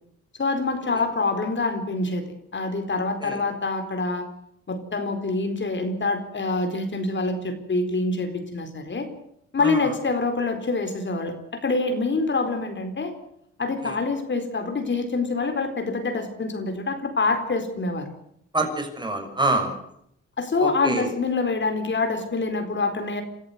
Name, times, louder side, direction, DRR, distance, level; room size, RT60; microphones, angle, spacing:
voice 1, 0.4-4.3 4.7-9.1 9.5-13.1 13.6-18.1 20.4-23.2, left 3 dB, 40° left, 6 dB, 4.3 m, -26 dB
voice 2, 18.5-19.8 20.6-21.1, right 2 dB, 15° right, 4 dB, 6.6 m, -26 dB
28.5 x 14.0 x 8.0 m, 0.72 s
cardioid pair, 90°, 30 cm